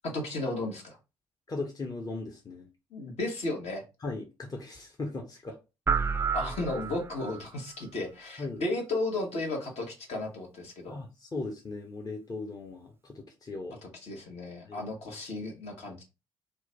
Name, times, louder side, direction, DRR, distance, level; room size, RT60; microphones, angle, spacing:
voice 1, 0.0-1.0 2.9-3.8 6.3-11.0 13.8-16.0, left 2 dB, 55° left, 1 dB, 1.3 m, -34 dB
voice 2, 1.5-2.7 4.0-5.6 8.4-8.6 10.9-13.8 14.6-14.8, left 3 dB, 30° left, 2 dB, 0.8 m, -38 dB
sound 1, 5.9-7.4, right 5 dB, 20° right, 0.4 m, -30 dB
3.0 x 2.3 x 3.8 m, 0.28 s
hypercardioid pair, 45°, 13 cm